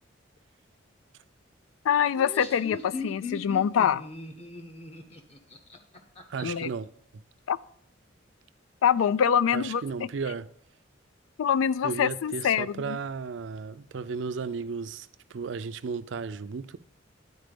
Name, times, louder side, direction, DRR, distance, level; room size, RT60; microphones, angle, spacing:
voice 1, 1.9-4.0 6.4-6.7 7.5-7.6 8.8-9.8 11.4-13.0, left 8 dB, 90° left, 0.3 m, -24 dB
Laughter, 2.1-6.7, left 3 dB, 30° left, 0.9 m, -39 dB
voice 2, 6.3-6.9 9.5-10.5 11.8-16.8, right 5 dB, 65° right, 0.4 m, -34 dB
10.5 x 4.2 x 5.2 m
head